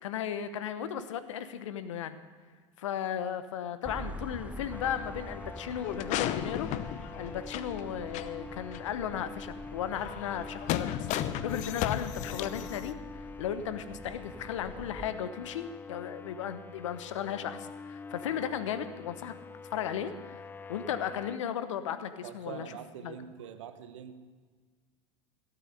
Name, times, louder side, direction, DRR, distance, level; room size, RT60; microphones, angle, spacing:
voice 1, 0.0-2.2 2.8-6.7 7.2-13.0 13.4-19.3 19.7-20.4 20.7-22.7 23.0-23.2, left 9 dB, 75° left, 11 dB, 1.0 m, -35 dB
sound 1, 3.8-15.1, right 1 dB, 10° right, 0.7 m, -46 dB
sound 2, 4.7-21.4, left 4 dB, 10° left, 0.3 m, -45 dB
sound 3, 5.8-7.8 8.1-8.3 8.7-8.8 9.9-12.9, left 12 dB, 50° left, 0.8 m, -34 dB
voice 2, 22.2-24.1, right 9 dB, 75° right, 10 dB, 1.1 m, -44 dB
16.5 x 9.0 x 6.6 m, 1.5 s
hypercardioid pair, 85°, 16 cm